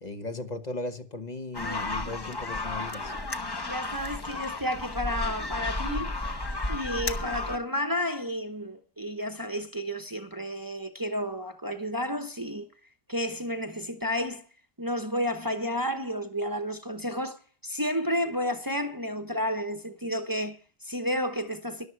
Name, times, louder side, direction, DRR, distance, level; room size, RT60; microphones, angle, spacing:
voice 1, 0.0-3.1, left 2 dB, 40° left, 1.3 m, -37 dB
sound 1, 1.5-7.6, left 2 dB, 25° left, 1.0 m, -33 dB
voice 2, 3.7-6.3 6.7-12.7 13.1-14.4 14.8-21.9, equal, 20° right, 1.0 m, -31 dB
14.0 x 11.0 x 4.7 m
omnidirectional pair, 1.1 m